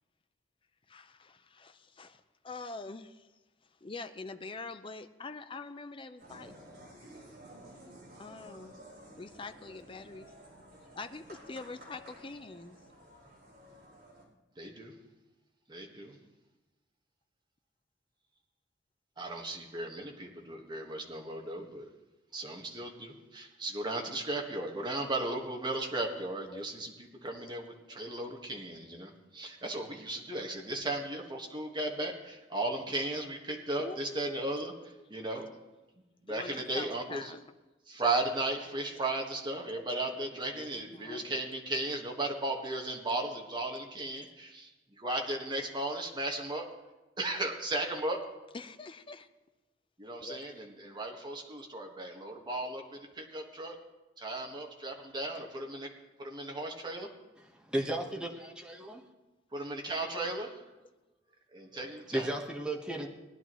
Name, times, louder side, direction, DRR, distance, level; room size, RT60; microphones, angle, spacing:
voice 1, 0.9-3.3 3.8-6.5 8.2-8.8 9.2-10.3 11.0-12.8 26.5-26.7 28.9-29.0 33.8-34.7 34.9-35.1 36.3-37.4 40.3-41.3 48.5-49.3 50.2-50.7 61.7-61.8, left 3 dB, 30° left, 9 dB, 0.6 m, -45 dB
sound 1, 6.2-14.2, right 1 dB, 55° right, 4.3 m, -53 dB
voice 2, 14.6-15.0 15.7-16.2 19.2-21.9 22.3-34.7 35.1-35.5 36.2-37.3 37.9-44.7 45.0-46.6 47.2-48.2 50.0-53.7 54.2-55.9 56.2-57.1 59.5-60.6 61.5-62.3, right 2 dB, 25° right, 0 dB, 1.6 m, -36 dB
voice 3, 57.5-59.0 62.1-63.1, right 1 dB, 5° right, -1 dB, 1.2 m, -34 dB
19.5 x 10.5 x 3.1 m, 1.1 s
head